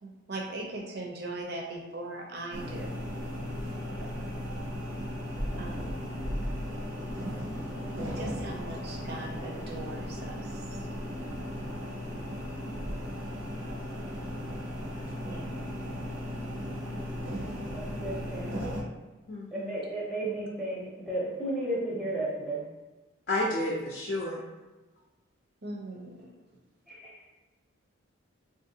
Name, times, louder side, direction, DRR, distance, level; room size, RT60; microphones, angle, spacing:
voice 1, 0.0-2.9 5.6-6.0 8.1-10.4 15.2-15.5 25.6-26.1, right 2 dB, 50° right, 0 dB, 0.6 m, -39 dB
sound 1, 2.5-18.8, equal, 75° right, 0.8 m, -36 dB
voice 2, 16.5-16.9 17.7-18.7 19.5-22.6 26.9-27.1, right 1 dB, ahead, -6 dB, 0.6 m, -34 dB
voice 3, 19.3-19.8 23.3-24.4, left 1 dB, 50° left, -5 dB, 0.4 m, -31 dB
3.3 x 2.5 x 2.7 m, 1.2 s
head